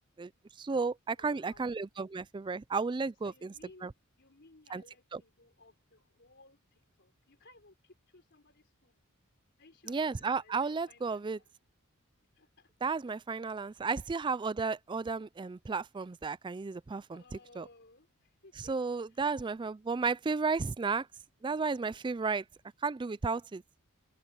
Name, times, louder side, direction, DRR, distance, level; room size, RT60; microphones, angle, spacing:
voice 1, 0.6-3.5 3.8-3.9 4.7-4.8 5.1-5.2 9.9-11.4 12.8-17.2 17.6-17.7 18.6-21.1 21.4-22.4 22.8-23.6, right 4 dB, 20° right, 0.3 m, -33 dB
voice 2, 1.1-1.7 3.2-9.0 9.6-11.5 12.4-12.7 13.7-13.9 17.1-18.7 19.1-19.3, left 2 dB, 55° left, 3.9 m, -60 dB
head